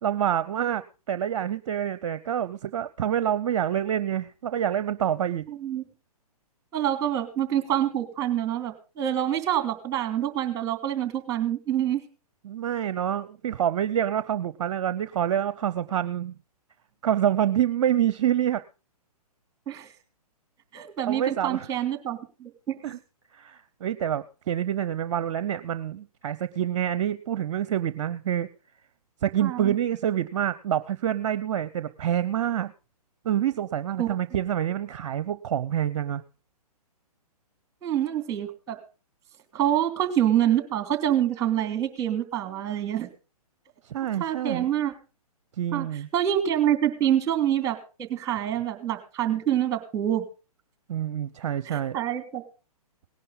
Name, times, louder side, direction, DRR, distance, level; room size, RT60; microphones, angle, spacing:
voice 1, 0.0-5.5 12.4-16.3 17.0-18.6 21.1-21.7 22.8-23.0 23.3-28.5 29.2-32.7 33.2-36.2 43.9-44.7 45.6-46.1 50.9-52.0, right 10 dB, 50° right, 15 dB, 0.7 m, -27 dB
voice 2, 5.5-5.9 6.7-12.0 19.7-19.9 20.7-22.8 29.4-29.7 34.0-34.1 37.8-38.8 39.5-43.1 44.2-44.9 45.7-45.9 46.1-50.2 51.6-52.4, right 11 dB, 15° right, 7 dB, 3.1 m, -26 dB
18.5 x 11.0 x 3.9 m, 0.33 s
figure-of-eight pair, 125°, 20 cm